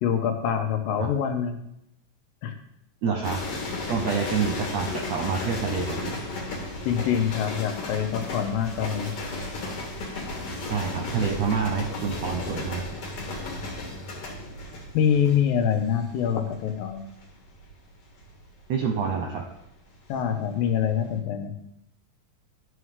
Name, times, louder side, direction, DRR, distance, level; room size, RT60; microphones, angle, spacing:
voice 1, 0.0-1.6 2.4-2.6 6.8-9.1 14.9-17.0 20.1-21.6, left 8 dB, 85° left, 6 dB, 2.6 m, -25 dB
voice 2, 3.0-3.4 3.9-6.1 10.7-12.8 18.7-19.4, right 6 dB, 70° right, 1 dB, 1.7 m, -27 dB
sound 1, 3.2-20.5 20.7-21.2, left 2 dB, 50° left, 2.2 m, -35 dB
11.5 x 6.3 x 3.6 m, 0.78 s
omnidirectional pair, 3.9 m